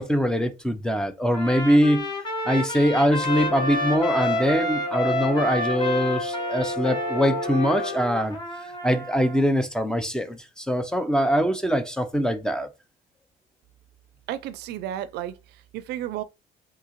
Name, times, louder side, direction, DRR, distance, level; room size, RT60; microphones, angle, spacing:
voice 1, 0.0-2.1 2.5-8.4 8.8-12.7, equal, 5° left, 0.5 m, -23 dB
Trumpet, 1.3-9.4, left 1 dB, 25° left, 1.1 m, -30 dB
Brass instrument, 3.2-8.1, left 2 dB, 65° left, 0.8 m, -31 dB
voice 2, 14.3-16.2, right 12 dB, 75° right, 0.4 m, -33 dB
3.6 x 2.7 x 2.9 m
cardioid pair, 110°, 17 cm